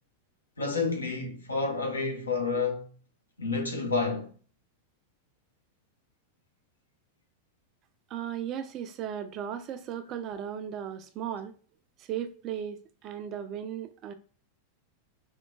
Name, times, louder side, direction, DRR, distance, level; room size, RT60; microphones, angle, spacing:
voice 1, 0.6-2.9 3.4-4.3, left 4 dB, 75° left, 0.7 m, -29 dB
voice 2, 8.1-11.5 12.0-14.1, right 9 dB, 35° right, 0.4 m, -36 dB
4.5 x 2.1 x 2.3 m
figure-of-eight pair, 90°, 0 cm